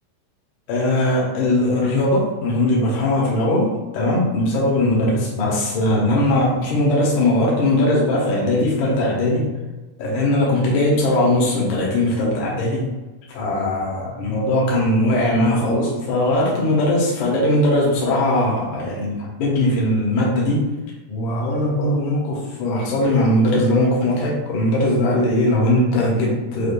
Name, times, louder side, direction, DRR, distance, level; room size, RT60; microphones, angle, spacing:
voice 1, 0.7-9.5 10.0-12.9 13.3-20.7 21.1-26.7, left 1 dB, 70° left, -3 dB, 1.9 m, -19 dB
6.6 x 2.4 x 2.5 m, 1.1 s
omnidirectional pair, 4.5 m